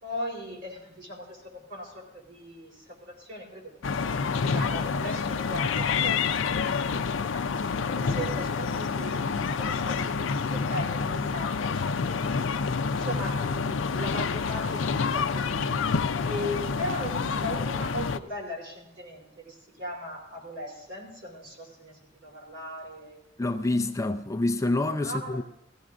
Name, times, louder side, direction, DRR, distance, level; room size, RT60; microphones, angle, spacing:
voice 1, 0.0-4.1 4.4-6.7 7.9-12.5 12.9-15.7 16.2-23.2 25.0-25.4, equal, 65° right, 4.2 m, -38 dB
sound 1, 3.8-18.2, left 5 dB, 80° left, 0.5 m, -28 dB
voice 2, 23.4-25.4, left 2 dB, 15° left, 0.4 m, -27 dB
19.0 x 14.5 x 2.5 m
head